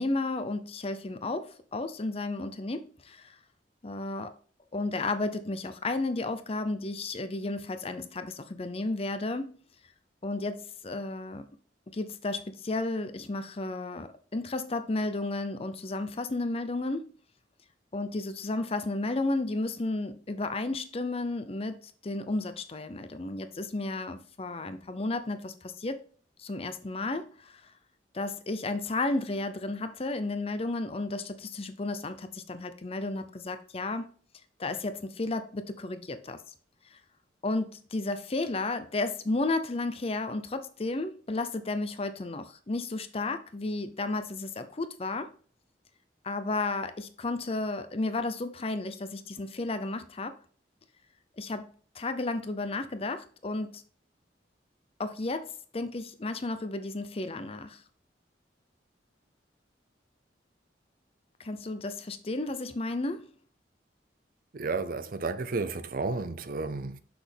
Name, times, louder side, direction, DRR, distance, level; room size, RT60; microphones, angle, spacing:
voice 1, 0.0-3.4 3.8-4.3 4.7-9.6 10.2-11.5 11.9-17.1 17.9-26.0 26.4-27.7 28.1-34.1 34.6-36.4 36.9-37.0 37.4-45.3 46.2-50.4 51.4-51.7 51.9-53.8 55.0-57.8 61.4-63.3, left 2 dB, 35° left, 0.6 m, -33 dB
voice 2, 64.5-67.0, right 3 dB, 50° right, 0.5 m, -32 dB
6.1 x 6.0 x 3.4 m
head